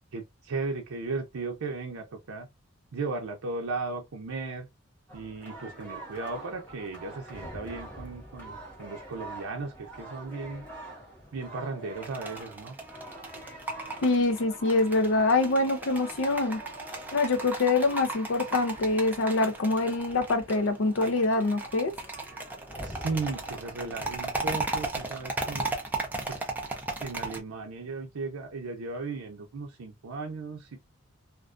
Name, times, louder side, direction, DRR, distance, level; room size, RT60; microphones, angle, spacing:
voice 1, 0.1-2.5 2.9-4.7 5.1-10.6 11.3-12.8 22.8-25.7 26.3-26.5 27.0-30.9, right 3 dB, 90° right, 0.5 m, -36 dB
sound 1, 5.1-24.2, right 1 dB, 10° left, 1.0 m, -46 dB
sound 2, 11.9-27.4, right 2 dB, 10° right, 0.4 m, -36 dB
voice 2, 14.0-16.6 17.1-21.9, left 2 dB, 65° left, 0.5 m, -25 dB
2.4 x 2.3 x 2.4 m
head